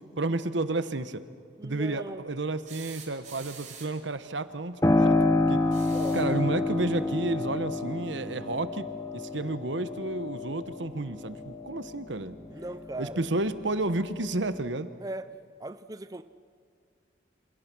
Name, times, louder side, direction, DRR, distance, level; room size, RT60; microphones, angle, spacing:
voice 1, 0.2-1.2 1.6-5.2 5.5-5.6 6.1-8.9 9.1-12.4 13.0-14.9, right 2 dB, 75° right, 12 dB, 1.2 m, -31 dB
voice 2, 1.6-2.2 5.8-6.2 12.5-13.3 15.0-15.3 15.6-16.2, right 2 dB, 20° right, 11 dB, 0.5 m, -38 dB
sound 1, 2.7-4.1 5.6-6.4 8.1-8.2 9.6-9.7, right 7 dB, 40° right, 4.5 m, -46 dB
Piano, 4.8-13.3 13.7-14.7, left 2 dB, 15° left, 1.1 m, -29 dB
27.5 x 27.0 x 6.2 m, 2.3 s
head